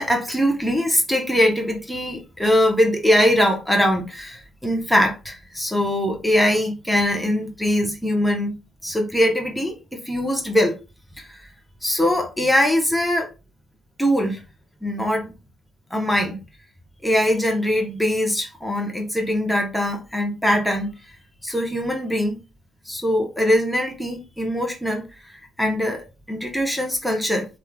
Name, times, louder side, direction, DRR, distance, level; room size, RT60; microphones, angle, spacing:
voice 1, 0.0-8.5 8.8-10.7 11.2-11.5 11.8-13.3 14.0-14.4 14.8-15.3 15.9-16.4 17.0-20.9 21.4-22.4 22.8-25.0 25.6-27.5, equal, 5° left, 1 dB, 0.9 m, -22 dB
2.9 x 2.5 x 2.3 m, 0.29 s
hypercardioid pair, 50°, 0 cm